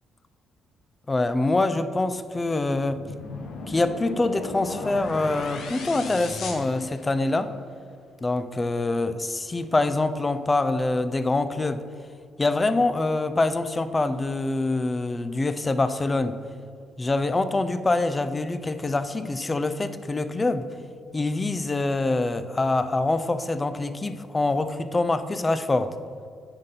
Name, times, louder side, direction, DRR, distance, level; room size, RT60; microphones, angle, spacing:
voice 1, 1.1-3.0 3.7-7.5 8.2-11.8 12.4-16.4 17.0-20.7 21.1-26.0, left 2 dB, 25° left, 11 dB, 0.5 m, -25 dB
sound 1, 2.9-7.5, left 3 dB, 70° left, 1.0 m, -36 dB
9.7 x 4.1 x 5.2 m, 2.2 s
cardioid pair, 90°, 0 cm